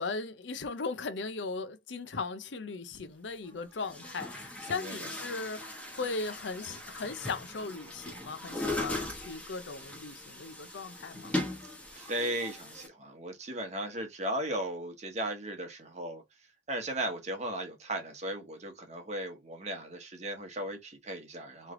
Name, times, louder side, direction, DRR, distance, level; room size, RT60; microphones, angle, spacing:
voice 1, 0.0-11.3, left 4 dB, 80° left, 0.6 m, -38 dB
Chatter / Gurgling / Tap, 2.9-3.0 3.8-12.9, left 2 dB, 5° left, 0.9 m, -39 dB
voice 2, 4.6-5.1 11.9-16.2 16.7-21.7, right 1 dB, 40° right, 1.1 m, -36 dB
3.2 x 3.1 x 3.7 m
head